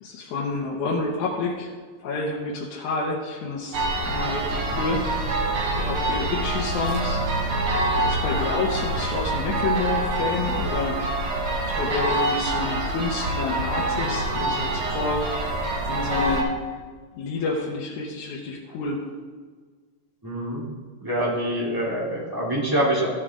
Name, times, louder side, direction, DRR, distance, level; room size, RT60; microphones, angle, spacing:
voice 1, 0.0-1.7 2.0-5.4 5.7-7.2 7.9-11.0 11.8-15.2 15.9-16.5 17.2-19.0, left 3 dB, 85° left, -3 dB, 2.5 m, -29 dB
sound 1, 3.7-16.4, right 2 dB, 55° right, 1.9 m, -26 dB
voice 2, 20.2-20.6 21.0-23.1, right 1 dB, 10° right, -6 dB, 2.1 m, -25 dB
14.0 x 7.5 x 3.7 m, 1.5 s
omnidirectional pair, 3.3 m